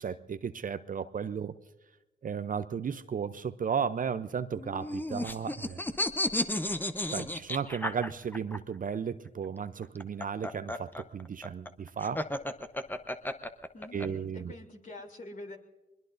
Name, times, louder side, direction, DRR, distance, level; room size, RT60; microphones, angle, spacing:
voice 1, 0.0-1.5 2.2-5.8 7.1-12.3 13.9-14.6, right 7 dB, 40° right, 12 dB, 0.7 m, -34 dB
sound 1, 4.6-8.6 9.8-14.1, left 1 dB, 10° left, 0.9 m, -33 dB
voice 2, 13.7-15.6, left 2 dB, 40° left, 3 dB, 3.1 m, -45 dB
23.0 x 21.5 x 2.7 m, 1.0 s
supercardioid pair, 55°, 21 cm